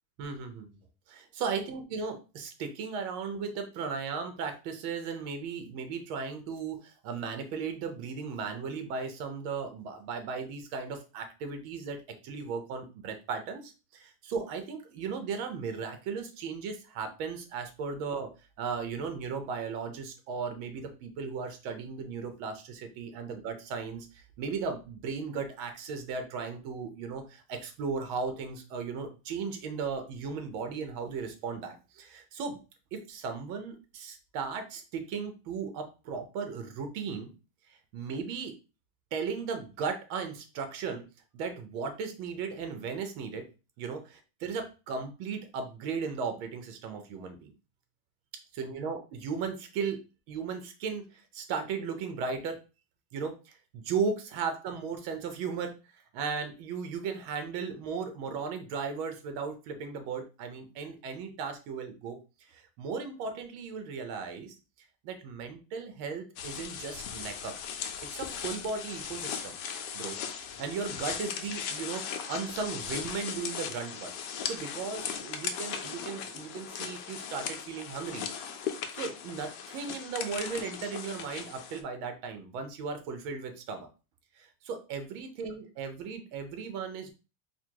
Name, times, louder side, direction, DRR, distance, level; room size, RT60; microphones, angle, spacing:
voice 1, 0.2-0.8 1.1-12.0 12.2-18.3 18.6-32.6 32.9-37.3 37.9-38.5 39.1-41.0 41.3-43.5 43.8-47.5 48.5-50.0 50.3-52.6 53.1-55.8 56.1-64.6 65.0-67.5 68.1-69.5 69.9-70.2 70.6-74.1 74.5-78.3 78.9-83.9 84.4-87.1, right 5 dB, 75° right, 7 dB, 1.6 m, -36 dB
sound 1, 66.4-81.8, left 7 dB, 75° left, 1.0 m, -38 dB
4.0 x 2.2 x 4.5 m, 0.32 s
omnidirectional pair, 2.3 m